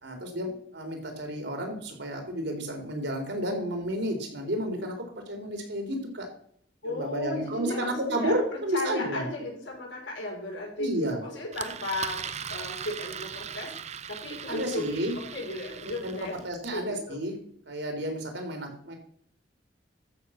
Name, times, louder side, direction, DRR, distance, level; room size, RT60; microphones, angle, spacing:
voice 1, 0.0-6.3 6.8-9.3 10.8-11.2 14.5-15.1 16.0-17.3 17.7-18.9, equal, 70° right, 3 dB, 3.8 m, -31 dB
voice 2, 6.8-8.3 8.7-10.9 11.2-12.2 12.5-13.7 14.1-16.3 16.7-17.2, left 2 dB, 85° left, -1 dB, 5.7 m, -35 dB
Engine, 11.5-16.8, right 7 dB, 40° right, 0.7 m, -39 dB
13.5 x 7.7 x 5.9 m, 0.64 s
head